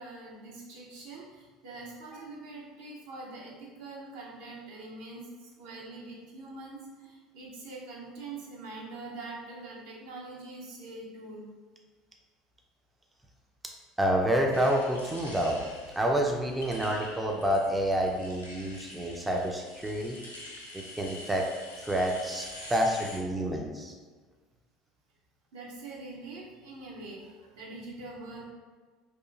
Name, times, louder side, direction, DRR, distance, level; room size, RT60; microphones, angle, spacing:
voice 1, 0.0-11.5 22.6-22.7 23.3-23.6 25.5-28.5, right 2 dB, 65° right, -4 dB, 0.6 m, -44 dB
voice 2, 14.0-15.6 15.9-20.2 20.7-21.4 21.8-23.9, equal, 10° right, 0 dB, 0.3 m, -28 dB
sound 1, 14.5-23.2, left 2 dB, 90° left, 0.4 m, -46 dB
2.8 x 2.4 x 2.3 m, 1.4 s
figure-of-eight pair, 65°, 0 cm